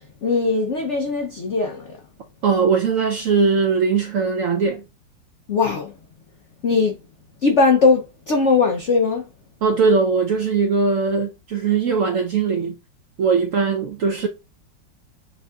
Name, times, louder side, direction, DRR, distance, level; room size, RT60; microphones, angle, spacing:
voice 1, 0.2-2.0 5.5-5.9 6.6-7.0 7.4-9.2, left 4 dB, 80° left, 0.6 m, -19 dB
voice 2, 2.4-4.8 9.6-12.7 13.2-14.3, right 5 dB, 70° right, 0.7 m, -20 dB
6.8 x 2.6 x 2.3 m
omnidirectional pair, 2.0 m